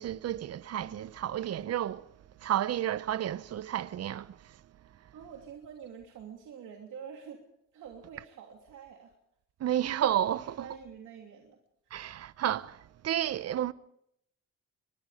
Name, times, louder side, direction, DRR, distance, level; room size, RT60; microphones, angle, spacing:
voice 1, 0.0-2.1 2.4-4.5 9.6-10.7 11.9-13.7, right 11 dB, 55° right, 0.8 m, -31 dB
voice 2, 5.1-7.4 7.7-9.1 10.3-11.6 11.8-12.0, right 7 dB, 80° right, 3.0 m, -47 dB
23.5 x 23.0 x 5.1 m
cardioid pair, 90°, 30 cm